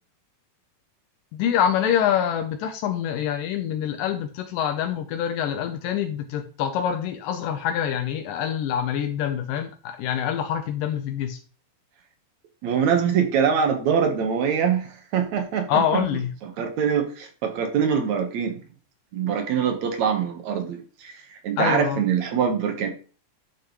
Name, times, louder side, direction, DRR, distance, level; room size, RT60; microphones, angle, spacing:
voice 1, 1.3-11.4 15.7-16.3 21.6-22.0, left 9 dB, 80° left, 6 dB, 2.4 m, -25 dB
voice 2, 12.6-16.0 16.4-18.6 19.1-22.9, right 7 dB, 65° right, 5 dB, 2.4 m, -24 dB
11.5 x 5.8 x 3.1 m, 0.38 s
omnidirectional pair, 3.9 m